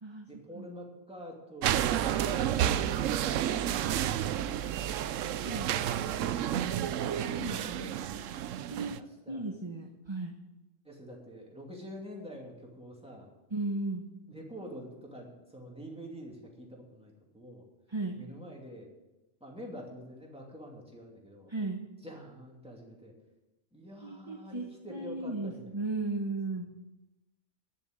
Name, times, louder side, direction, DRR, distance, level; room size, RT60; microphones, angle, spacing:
voice 1, 0.3-3.1 9.3-9.5 10.8-13.3 14.3-17.6 18.2-18.9 19.4-21.5 22.0-23.1 23.7-25.8, equal, 5° right, -2 dB, 2.5 m, -47 dB
sound 1, 1.6-9.0, right 10 dB, 85° right, 1.0 m, -30 dB
voice 2, 5.4-5.7 7.0-7.9 8.7-9.0 9.3-10.3 13.5-14.1 17.9-18.2 21.5-21.8 24.0-26.7, right 2 dB, 25° right, 3 dB, 0.9 m, -36 dB
10.5 x 7.0 x 8.8 m, 1.0 s
omnidirectional pair, 1.3 m